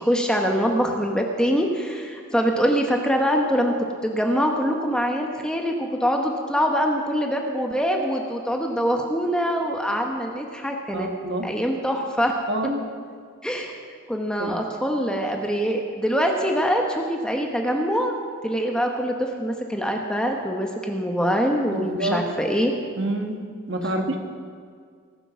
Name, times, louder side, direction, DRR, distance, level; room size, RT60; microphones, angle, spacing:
voice 1, 0.0-3.7 4.0-11.1 11.4-12.4 12.6-12.7 13.4-13.8 14.1-18.1 18.4-22.7 23.8-23.9, equal, 5° left, 2 dB, 1.0 m, -24 dB
voice 2, 10.9-11.5 12.5-12.8 14.4-14.6 21.7-22.2 23.0-23.4 23.7-24.2, right 1 dB, 60° right, 4 dB, 1.4 m, -27 dB
20.5 x 6.9 x 6.2 m, 2.1 s
head